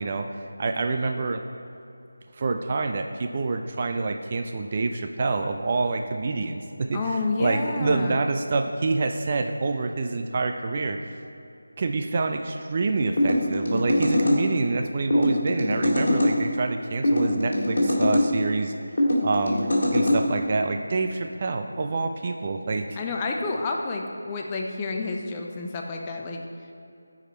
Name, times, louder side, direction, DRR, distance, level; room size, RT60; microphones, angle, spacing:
voice 1, 0.0-1.4 2.3-11.0 11.8-22.9, right 3 dB, 30° right, 5 dB, 0.4 m, -27 dB
voice 2, 6.9-8.2 23.0-26.4, left 3 dB, 15° left, 1 dB, 0.6 m, -29 dB
sound 1, 13.2-14.4 15.1-16.3 17.0-18.3 19.0-20.2, left 1 dB, 45° left, 2.1 m, -22 dB
14.5 x 4.9 x 4.4 m, 2.7 s
figure-of-eight pair, 165°, 0 cm